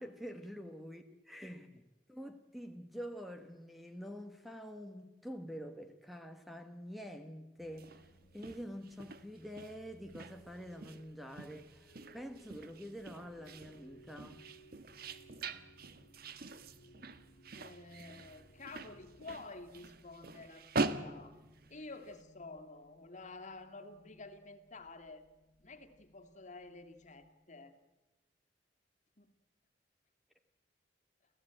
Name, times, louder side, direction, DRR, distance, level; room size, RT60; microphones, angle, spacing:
voice 1, 0.0-8.1 8.3-14.4, equal, ahead, 1.2 m, -47 dB
sound 1, 7.6-27.3, equal, 65° left, 1.9 m, -64 dB
sound 2, 7.7-22.2, right 3 dB, 55° right, 1.3 m, -44 dB
voice 2, 17.5-21.4 21.7-25.3 25.6-27.7 29.2-29.3, left 3 dB, 40° left, 2.3 m, -50 dB
29.5 x 15.5 x 8.9 m
head